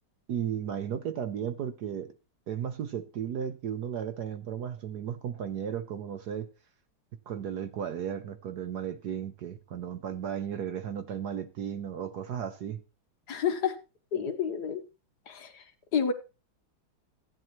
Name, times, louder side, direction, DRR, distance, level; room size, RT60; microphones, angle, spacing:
voice 1, 0.3-2.1 2.5-6.5 7.3-12.8, right 8 dB, 60° right, 1.2 m, -35 dB
voice 2, 13.3-13.7 14.1-14.8 15.3-15.5 15.9-16.1, left 7 dB, 60° left, 1.5 m, -29 dB
14.5 x 9.2 x 2.9 m
omnidirectional pair, 2.2 m